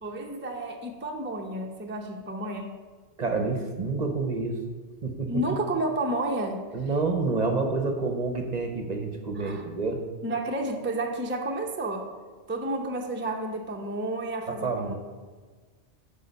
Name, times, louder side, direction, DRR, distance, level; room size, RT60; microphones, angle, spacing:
voice 1, 0.0-2.8 5.3-6.6 9.3-9.6 10.2-12.1 12.5-14.9, right 1 dB, 15° right, 2 dB, 0.5 m, -31 dB
voice 2, 3.2-4.6 5.0-5.3 6.7-10.0 14.5-14.9, right 3 dB, 45° right, 5 dB, 0.8 m, -28 dB
8.3 x 5.6 x 5.3 m, 1.5 s
omnidirectional pair, 1.1 m